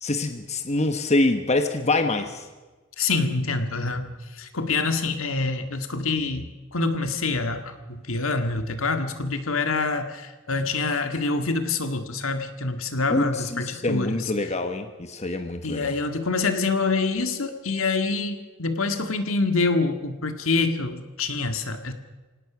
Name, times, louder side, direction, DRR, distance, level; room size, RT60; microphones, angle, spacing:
voice 1, 0.0-2.5 13.1-15.9, left 2 dB, 35° left, 7 dB, 1.2 m, -25 dB
voice 2, 3.0-4.1 4.3-14.3 15.6-21.9, left 3 dB, 75° left, 7 dB, 2.0 m, -26 dB
25.0 x 18.0 x 6.2 m, 1.2 s
head